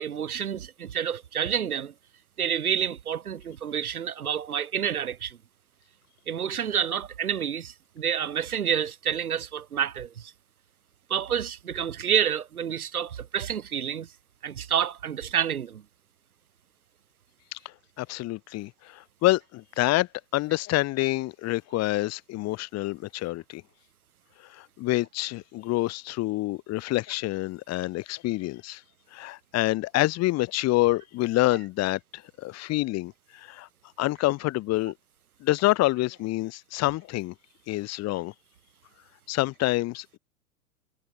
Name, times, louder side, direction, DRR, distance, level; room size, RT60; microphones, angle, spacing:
voice 1, 0.0-1.9 2.4-5.4 6.3-10.3 11.1-14.1 14.4-15.8, right 8 dB, 65° right, 3.2 m, -29 dB
voice 2, 18.0-23.6 24.5-28.8 29.1-33.7 34.0-34.9 35.4-37.3 37.7-38.3 39.3-40.2, left 18 dB, 35° left, 5.0 m, -27 dB
figure-of-eight pair, 95°, 46 cm